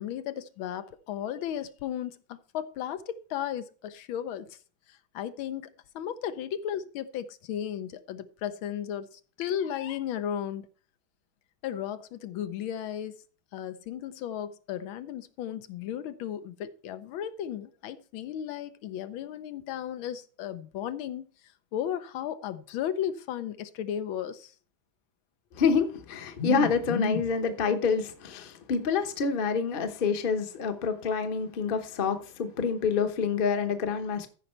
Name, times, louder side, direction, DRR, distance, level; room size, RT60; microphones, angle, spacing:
voice 1, 0.0-4.6 4.9-10.7 11.6-13.2 13.5-21.3 21.7-24.5, left 10 dB, 85° left, 1.6 m, -35 dB
voice 2, 25.5-34.3, left 5 dB, 40° left, 0.8 m, -27 dB
14.0 x 5.3 x 4.3 m
omnidirectional pair, 2.2 m